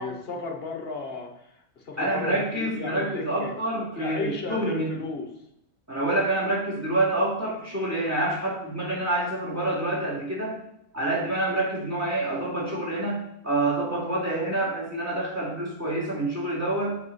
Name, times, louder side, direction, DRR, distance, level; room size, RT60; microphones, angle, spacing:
voice 1, 0.0-1.3 1.8-3.5 4.0-5.3, left 4 dB, 40° left, 3 dB, 1.2 m, -34 dB
voice 2, 2.0-4.9 5.9-10.6 10.9-17.0, right 2 dB, 10° right, -5 dB, 2.6 m, -27 dB
8.4 x 4.8 x 4.2 m, 0.78 s
omnidirectional pair, 1.8 m